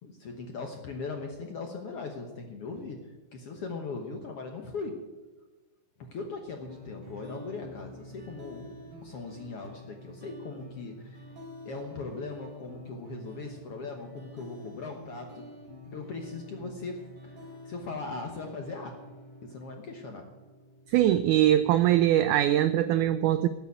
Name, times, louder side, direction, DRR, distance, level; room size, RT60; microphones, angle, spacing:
voice 1, 0.0-5.0 6.0-8.7 9.0-15.4 15.9-19.0 19.4-20.4, left 3 dB, 60° left, 3 dB, 1.6 m, -39 dB
sound 1, 6.7-21.7, left 1 dB, 40° right, 3.9 m, -48 dB
voice 2, 20.9-23.5, right 12 dB, 85° right, 12 dB, 1.7 m, -22 dB
13.5 x 7.0 x 9.5 m, 1.2 s
omnidirectional pair, 4.1 m